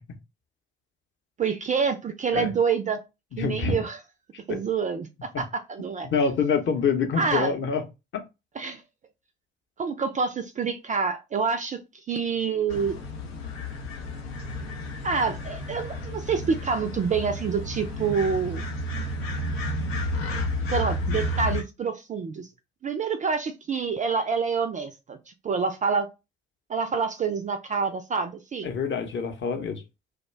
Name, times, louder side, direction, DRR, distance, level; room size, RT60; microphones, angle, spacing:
voice 1, 1.4-3.0 3.4-4.0 4.5-6.1 7.2-7.5 8.6-8.8 9.8-11.8 12.1-13.0 15.0-18.6 20.7-22.5 22.8-26.1 26.7-28.7, right 5 dB, 25° right, 0.3 m, -27 dB
voice 2, 3.3-3.8 4.5-4.6 6.0-7.8 8.1-8.2 28.6-29.8, left 5 dB, 40° left, 0.7 m, -26 dB
sound 1, 12.7-21.6, left 1 dB, 80° left, 0.5 m, -31 dB
2.4 x 2.1 x 3.1 m
figure-of-eight pair, 50°, 31 cm